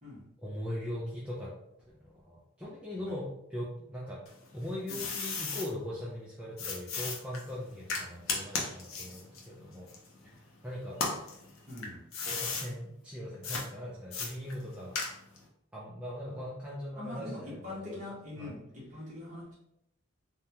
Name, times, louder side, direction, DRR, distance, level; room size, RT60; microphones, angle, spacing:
voice 1, 0.4-1.5 2.3-4.2 4.5-9.9 10.2-10.3 10.6-11.0 12.3-15.0 15.7-18.0 18.4-18.5, left 1 dB, 5° right, -7 dB, 0.4 m, -40 dB
sound 1, 4.3-5.7 6.6-10.5 10.9-12.7 13.4-13.7 14.1-15.4, left 4 dB, 75° left, 0.6 m, -36 dB
voice 2, 11.7-12.0 16.2-16.4 16.9-19.5, left 2 dB, 35° right, -7 dB, 1.2 m, -43 dB
3.4 x 2.2 x 2.8 m, 0.79 s
head